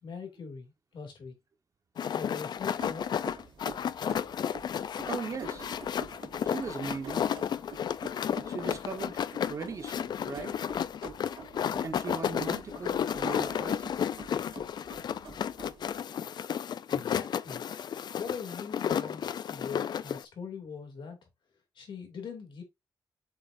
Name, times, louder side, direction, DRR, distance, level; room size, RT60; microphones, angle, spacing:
voice 1, 0.0-1.3 2.1-3.2 16.9-17.6 18.2-19.2 19.5-21.2 21.8-22.6, left 5 dB, 80° left, 2.6 m, -41 dB
sound 1, 2.0-20.2, left 8 dB, 60° left, 0.4 m, -32 dB
sound 2, 2.6-16.0, right 5 dB, 75° right, 2.9 m, -49 dB
voice 2, 5.0-5.7 6.4-7.3 8.5-9.2 9.5-10.6 11.8-14.0, right 4 dB, 40° right, 1.2 m, -38 dB
7.3 x 5.6 x 2.6 m
wide cardioid pair, 150°, 8 cm